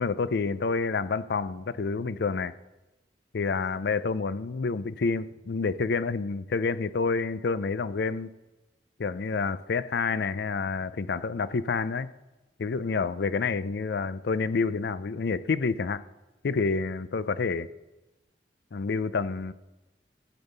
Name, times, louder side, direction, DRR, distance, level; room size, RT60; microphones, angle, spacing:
voice 1, 0.0-2.5 3.3-8.3 9.0-12.1 12.6-16.0 16.4-17.7 18.7-19.5, left 4 dB, 65° left, 16 dB, 0.5 m, -28 dB
14.5 x 7.2 x 6.6 m, 1.1 s
head